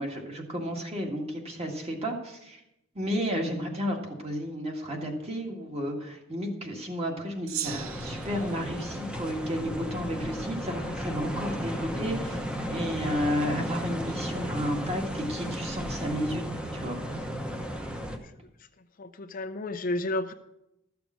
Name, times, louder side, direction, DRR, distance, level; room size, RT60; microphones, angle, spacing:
voice 1, 0.0-2.6 3.0-12.4 12.7-16.5 16.7-17.0, equal, 30° right, 1 dB, 1.8 m, -32 dB
Gong, 7.5-10.1, right 11 dB, 80° right, 0.6 m, -40 dB
sound 1, 7.7-18.2, equal, 5° right, 0.9 m, -34 dB
voice 2, 19.0-20.3, left 2 dB, 40° left, 9 dB, 0.5 m, -31 dB
13.0 x 7.0 x 6.2 m, 0.87 s
head